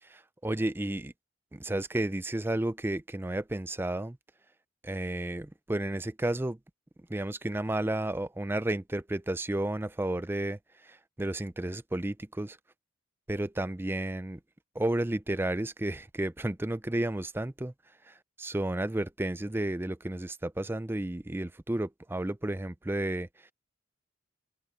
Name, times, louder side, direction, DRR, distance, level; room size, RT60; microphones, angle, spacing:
voice 1, 0.0-1.1 1.5-4.2 4.8-6.6 7.1-12.6 13.3-14.4 14.7-17.7 18.1-23.5, right 1 dB, 10° right, 0.4 m, -32 dB
open air
head